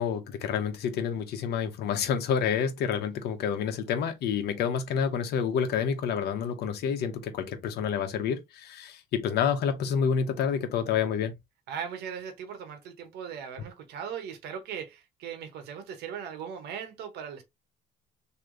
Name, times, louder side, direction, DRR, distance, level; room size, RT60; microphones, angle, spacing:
voice 1, 0.0-11.3, left 7 dB, 75° left, 1.1 m, -28 dB
voice 2, 11.7-17.4, right 7 dB, 75° right, 1.1 m, -38 dB
3.2 x 3.0 x 3.8 m
cardioid pair, 110°, 17 cm